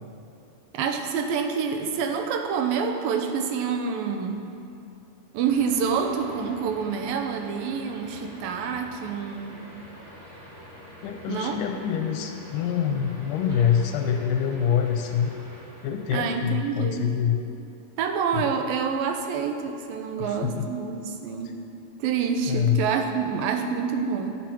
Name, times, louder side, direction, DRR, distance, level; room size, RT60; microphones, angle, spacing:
voice 1, 0.7-4.5 5.3-9.7 11.3-11.6 16.1-17.1 18.0-21.6 22.0-24.4, right 6 dB, 85° right, 5 dB, 2.6 m, -27 dB
sound 1, 5.4-16.3, equal, 15° right, 3.1 m, -45 dB
voice 2, 11.0-15.3 15.8-17.4 18.3-18.5 20.2-20.8 22.5-22.8, left 8 dB, 80° left, 5 dB, 2.1 m, -25 dB
14.0 x 9.5 x 4.5 m, 2.7 s
omnidirectional pair, 4.0 m